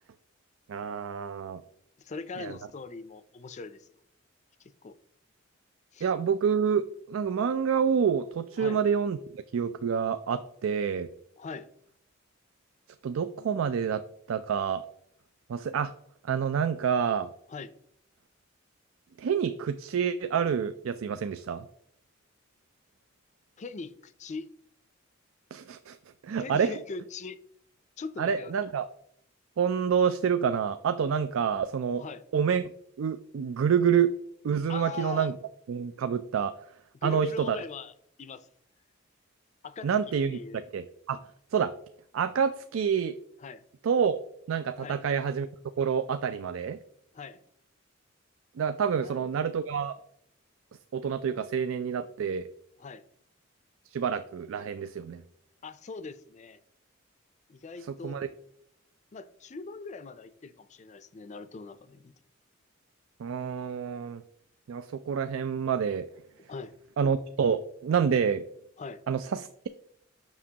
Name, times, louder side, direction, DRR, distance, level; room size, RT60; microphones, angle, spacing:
voice 1, 0.7-1.6 2.4-2.6 6.0-11.1 13.0-14.9 15.5-15.9 16.3-17.3 19.2-21.7 25.5-26.0 26.2-26.7 28.2-28.9 29.6-32.0 32.3-32.6 33.0-34.2 34.4-35.3 35.7-36.5 37.0-37.6 39.8-41.2 41.5-41.7 42.1-43.1 43.8-44.2 44.5-45.5 45.8-46.8 48.6-49.9 50.9-52.5 53.9-55.2 57.8-58.3 63.2-64.2 64.7-66.1 67.0-68.4 69.1-69.7, right 7 dB, 80° right, 11 dB, 0.4 m, -28 dB
voice 2, 2.0-3.9 4.6-4.9 5.9-6.1 8.6-8.8 11.4-11.7 17.5-17.7 23.6-24.5 26.4-27.4 28.0-28.6 32.0-32.2 34.7-35.3 37.0-37.9 38.2-38.5 39.6-39.9 40.3-40.6 43.4-43.6 44.8-45.0 47.1-47.4 49.0-49.3 52.8-53.0 55.6-56.6 57.5-58.2 59.1-62.1 66.5-66.7 68.8-69.0, left 4 dB, 35° left, 13 dB, 0.4 m, -41 dB
7.3 x 6.1 x 2.8 m, 0.68 s
head